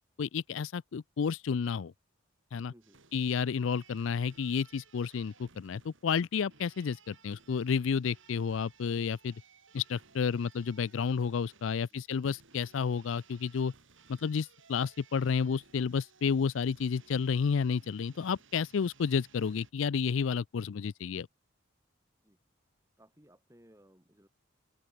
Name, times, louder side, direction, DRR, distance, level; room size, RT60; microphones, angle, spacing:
voice 1, 0.2-1.9 2.5-2.7 3.1-9.3 9.7-13.7 14.1-21.3, left 6 dB, 70° left, 0.4 m, -31 dB
voice 2, 2.7-3.0 11.7-12.0 22.2-22.4 23.0-24.3, equal, 15° right, 4.9 m, -61 dB
sound 1, 2.8-19.7, right 5 dB, 65° right, 3.0 m, -61 dB
open air
head